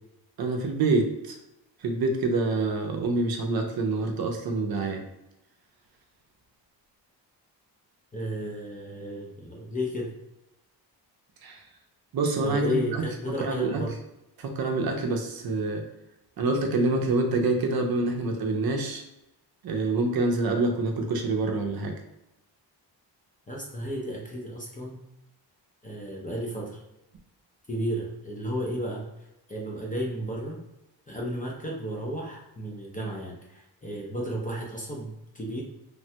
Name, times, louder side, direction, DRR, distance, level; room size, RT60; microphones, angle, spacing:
voice 1, 0.4-1.3 1.8-5.0 11.4-11.6 12.1-13.0 13.4-13.8 14.4-15.8 16.4-19.0 19.6-21.9, right 3 dB, 55° right, 3 dB, 0.5 m, -26 dB
voice 2, 8.1-10.1 12.4-13.9 23.5-25.0 25.8-26.8 27.7-29.1 29.5-30.6 31.1-35.6, equal, 20° left, -3 dB, 0.4 m, -33 dB
3.2 x 2.1 x 2.7 m, 0.90 s
wide cardioid pair, 175°, 43 cm